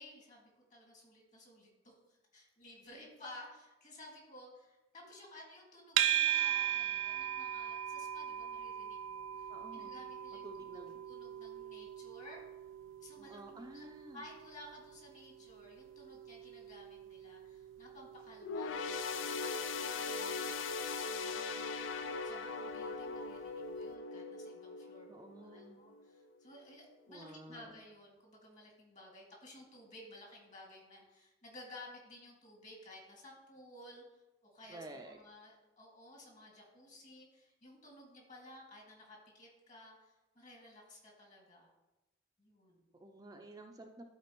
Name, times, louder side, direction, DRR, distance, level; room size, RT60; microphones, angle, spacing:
voice 1, 0.0-12.4 13.0-13.9 14.1-21.9 22.2-41.7 42.4-42.8, left 1 dB, 40° left, -2 dB, 2.2 m, -55 dB
sound 1, 6.0-23.2, right 10 dB, 85° right, 0.4 m, -40 dB
voice 2, 9.5-9.9 10.4-11.0 13.2-14.2 19.9-20.5 25.1-25.8 27.1-27.7 34.7-35.2 42.9-44.0, right 1 dB, 20° right, 3 dB, 0.5 m, -52 dB
sound 2, 18.4-26.1 26.5-26.7 27.6-27.7, left 4 dB, 80° left, 0.4 m, -40 dB
12.5 x 4.3 x 3.0 m, 1.0 s
head